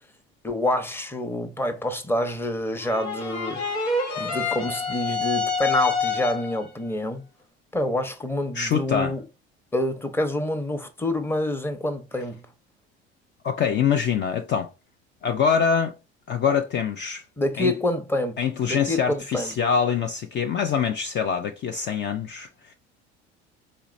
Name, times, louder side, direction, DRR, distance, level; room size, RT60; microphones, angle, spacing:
voice 1, 0.4-7.3 7.7-9.2 9.7-12.4 17.4-18.4 18.7-19.5, left 1 dB, 5° left, 0.8 m, -27 dB
sound 1, 2.8-6.7, left 4 dB, 85° left, 1.2 m, -27 dB
voice 2, 8.5-9.1 13.4-14.7 15.2-15.9 16.3-17.2 17.6-17.7 18.4-22.7, left 7 dB, 35° left, 0.5 m, -24 dB
4.2 x 2.9 x 2.5 m
hypercardioid pair, 70°, 30 cm